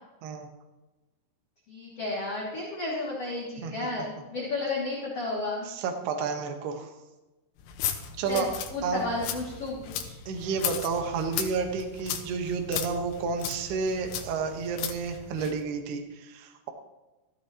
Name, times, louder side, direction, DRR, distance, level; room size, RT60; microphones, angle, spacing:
voice 1, 1.7-5.7 8.3-10.1, left 2 dB, 40° left, -6 dB, 2.6 m, -33 dB
voice 2, 5.7-6.9 8.2-8.5 8.8-9.0 10.3-16.7, right 5 dB, 65° right, 4 dB, 3.0 m, -31 dB
sound 1, 7.6-15.6, left 9 dB, 90° left, 3.7 m, -36 dB
16.0 x 14.5 x 3.0 m, 1.1 s
omnidirectional pair, 5.7 m